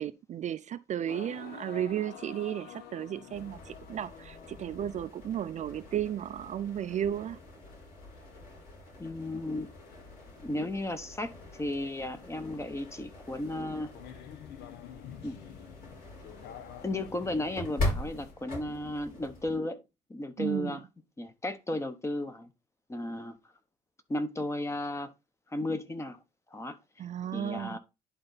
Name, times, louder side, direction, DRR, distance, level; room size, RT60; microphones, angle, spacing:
voice 1, 0.0-7.4 20.4-20.8 27.0-27.8, right 10 dB, 45° right, 0.4 m, -34 dB
sound 1, 1.1-18.3, left 9 dB, 75° left, 0.9 m, -51 dB
sound 2, 3.3-19.6, left 1 dB, 55° left, 4.6 m, -42 dB
voice 2, 9.0-9.7 10.4-13.9 15.2-15.4 16.8-19.8 20.1-20.8 21.2-22.5 22.9-23.4 24.1-25.1 25.5-26.2 26.5-27.0 27.3-27.8, left 1 dB, 15° left, 1.0 m, -34 dB
10.5 x 3.9 x 4.0 m
cardioid pair, 110°, 17 cm